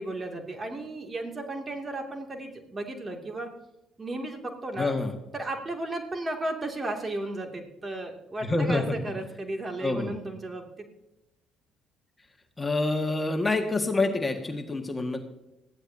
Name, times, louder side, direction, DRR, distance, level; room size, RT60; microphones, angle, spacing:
voice 1, 0.0-3.5 4.0-4.9 5.3-10.7, right 2 dB, 30° right, 3 dB, 2.6 m, -34 dB
voice 2, 4.8-5.1 8.4-9.2 9.8-10.1 12.6-15.2, left 2 dB, 20° left, 4 dB, 1.8 m, -27 dB
20.0 x 14.5 x 2.8 m, 0.93 s
hypercardioid pair, 55°, 0 cm